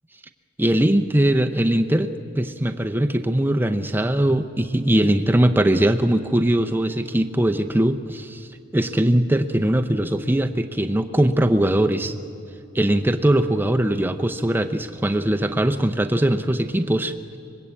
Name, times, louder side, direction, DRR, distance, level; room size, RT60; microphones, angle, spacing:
voice 1, 0.6-2.1 2.4-8.5 8.7-12.1 12.7-17.1, right 1 dB, 10° right, 6 dB, 0.6 m, -20 dB
24.0 x 21.0 x 8.4 m, 2.6 s
head